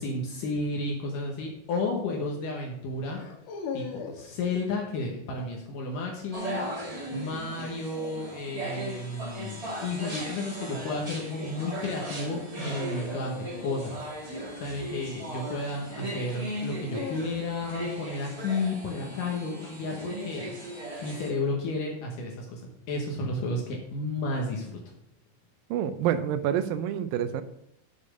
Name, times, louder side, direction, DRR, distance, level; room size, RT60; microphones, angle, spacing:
voice 1, 0.0-3.2 3.7-3.8 4.1-6.6 7.1-14.0 14.6-20.5 21.0-22.6 22.9-24.8, left 2 dB, 70° left, 0 dB, 2.6 m, -32 dB
sound 1, 1.4-1.6 3.1-4.3 6.4-7.4 9.9-10.3 13.0-15.4 16.5-17.8, left 6 dB, 90° left, 3.0 m, -41 dB
sound 2, 6.3-21.3, right 1 dB, 55° right, 0.4 m, -37 dB
voice 2, 25.7-27.4, right 9 dB, 80° right, 10 dB, 2.4 m, -27 dB
7.0 x 6.7 x 6.3 m, 0.77 s
omnidirectional pair, 4.1 m